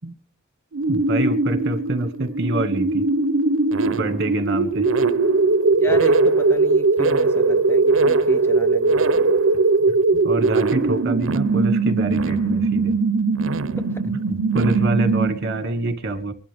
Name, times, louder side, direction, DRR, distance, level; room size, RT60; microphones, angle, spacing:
sound 1, 0.7-15.6, right 3 dB, 75° right, 0.7 m, -20 dB
voice 1, 0.9-3.1 4.0-4.9 5.9-6.0 10.1-13.0 14.5-16.3, right 2 dB, 55° right, 1.8 m, -25 dB
voice 2, 5.7-9.4 13.9-14.1, left 1 dB, 10° left, 0.6 m, -33 dB
24.0 x 11.5 x 3.5 m
head